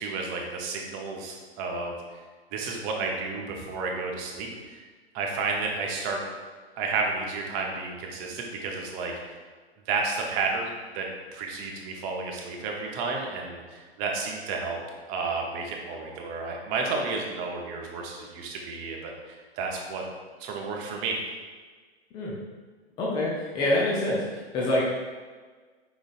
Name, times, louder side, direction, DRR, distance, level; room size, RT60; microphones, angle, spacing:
voice 1, 0.0-2.2 2.5-4.8 5.1-6.2 6.8-9.4 9.9-14.8 15.1-20.0 20.4-21.2, right 4 dB, 30° right, 0 dB, 0.7 m, -32 dB
voice 2, 23.0-24.9, left 1 dB, 15° left, -5 dB, 0.5 m, -26 dB
5.1 x 3.8 x 2.4 m, 1.4 s
figure-of-eight pair, 120°, 32 cm